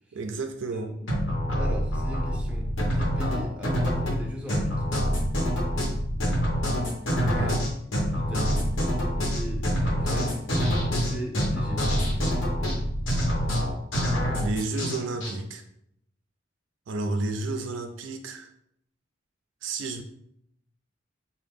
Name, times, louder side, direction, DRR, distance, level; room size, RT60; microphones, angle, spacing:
voice 1, 0.1-1.0 7.2-7.6 14.4-15.6 16.9-18.5 19.6-20.0, right 3 dB, 75° right, 5 dB, 0.4 m, -31 dB
voice 2, 0.7-1.1 1.6-4.7 7.4-7.6 8.1-8.7 9.2-10.4 10.9-11.9, right 1 dB, 5° right, -2 dB, 0.6 m, -39 dB
sound 1, 1.1-15.3, equal, 85° left, 1.0 m, -26 dB
3.6 x 2.2 x 3.6 m, 0.73 s
head